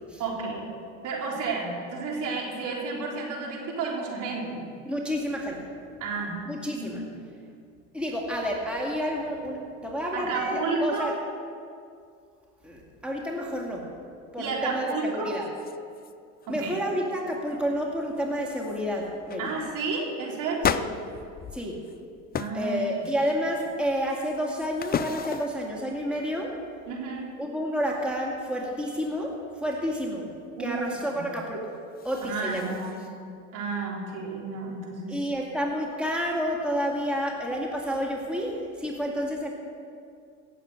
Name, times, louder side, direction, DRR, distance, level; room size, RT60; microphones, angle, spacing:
voice 1, 0.2-0.7 1.0-4.7 6.0-6.4 6.8-7.0 10.1-11.1 14.4-15.3 16.5-16.8 19.4-20.8 22.3-23.1 26.9-27.3 30.6-30.8 32.2-33.2 33.5-35.3, right 4 dB, 55° right, -1 dB, 3.5 m, -31 dB
voice 2, 4.9-5.7 6.5-7.0 7.9-11.1 12.6-13.9 14.3-15.4 16.5-19.4 20.7-20.8 21.5-21.8 22.5-26.5 27.4-30.3 30.6-31.7 32.0-32.7 35.1-39.5, equal, 5° right, -2 dB, 2.2 m, -30 dB
sound 1, 14.9-15.0 15.3-16.1 16.4-16.8 17.1-17.6 18.2-18.3 18.6-18.8 19.3-19.5 20.6-22.0 22.3-22.6 23.0-23.5 24.1-25.7 31.7-33.1, left 8 dB, 25° left, 0.5 m, -34 dB
17.0 x 7.5 x 6.6 m, 2.4 s
hypercardioid pair, 85°, 37 cm